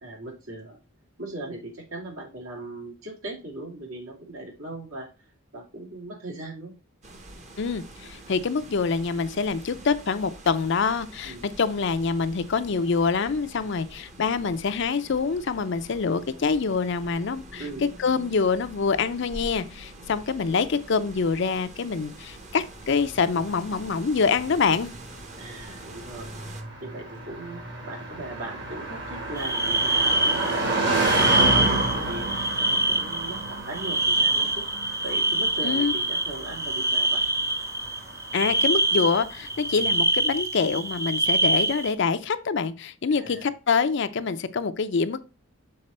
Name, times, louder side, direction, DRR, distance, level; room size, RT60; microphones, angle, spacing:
voice 1, 0.0-0.8 1.2-5.1 5.5-6.7 11.2-11.5 17.6-17.9 25.4-26.3 26.8-32.3 32.6-34.7 35.0-37.2 43.1-43.5, right 2 dB, 75° right, 2.3 m, -38 dB
sound 1, 7.0-26.6, right 1 dB, 35° right, 0.9 m, -45 dB
voice 2, 7.6-17.6 18.0-24.9 35.6-35.9 38.3-45.2, left 5 dB, 55° left, 0.5 m, -25 dB
Car passing by, 22.9-39.4, right 2 dB, 55° right, 1.9 m, -31 dB
sound 2, 29.4-41.9, right 2 dB, 15° right, 0.6 m, -25 dB
6.6 x 4.1 x 4.1 m
head